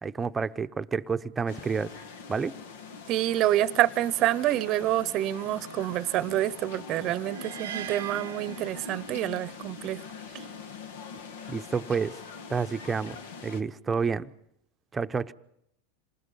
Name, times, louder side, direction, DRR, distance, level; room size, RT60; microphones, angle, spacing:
voice 1, 0.0-2.0 2.3-2.6 11.5-12.2 12.5-14.3 14.9-15.3, right 5 dB, 15° right, 0.7 m, -29 dB
sound 1, 1.5-13.6, left 5 dB, 90° left, 1.4 m, -43 dB
voice 2, 3.1-10.0 10.3-10.4, right 14 dB, 45° right, 0.8 m, -27 dB
sound 2, 7.3-9.5, right 10 dB, 80° right, 0.7 m, -41 dB
27.0 x 20.0 x 5.7 m
supercardioid pair, 125°, 0 cm